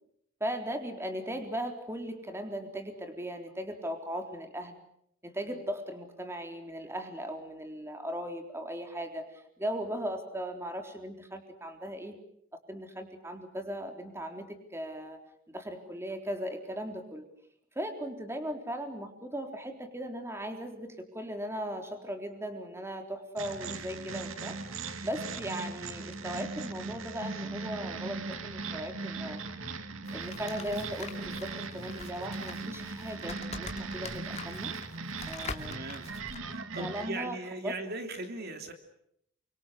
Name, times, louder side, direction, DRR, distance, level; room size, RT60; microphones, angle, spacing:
voice 1, 0.4-4.7 5.2-12.2 12.7-15.2 15.5-17.2 17.8-29.4 30.1-34.7 35.3-35.9 36.8-37.4 37.6-37.7, equal, 15° right, 5 dB, 3.8 m, -38 dB
sound 1, 23.4-37.1, right 4 dB, 85° right, 2.3 m, -39 dB
sound 2, 30.0-36.4, left 4 dB, 35° left, 2.6 m, -44 dB
voice 2, 35.7-36.1 36.5-38.7, right 2 dB, 50° right, 6 dB, 3.0 m, -39 dB
29.5 x 25.0 x 6.5 m, 0.73 s
head